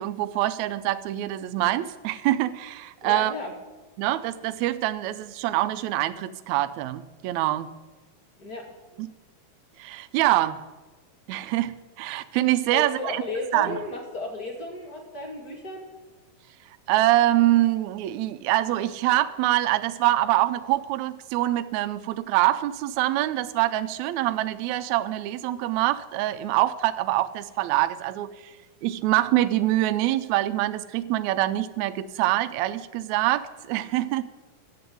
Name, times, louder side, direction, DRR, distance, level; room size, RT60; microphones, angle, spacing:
voice 1, 0.0-3.3 4.0-7.7 9.0-9.1 9.8-10.6 11.3-13.2 13.5-13.8 16.9-28.3 28.8-34.2, right 15 dB, 85° right, 11 dB, 1.6 m, -25 dB
voice 2, 3.0-3.5 8.4-8.7 12.7-15.9, left 2 dB, 35° left, 1 dB, 1.8 m, -34 dB
11.5 x 7.8 x 9.4 m, 1.2 s
omnidirectional pair, 4.0 m